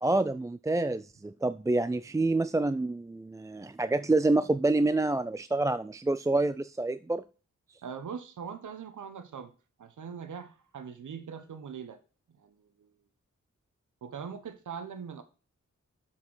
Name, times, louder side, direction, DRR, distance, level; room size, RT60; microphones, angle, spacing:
voice 1, 0.0-7.2, right 2 dB, 10° right, 0.3 m, -27 dB
voice 2, 7.8-9.5 9.8-12.0 12.4-12.9 14.0-15.2, right 7 dB, 85° right, 1.1 m, -41 dB
7.8 x 4.6 x 5.5 m
cardioid pair, 50°, 30 cm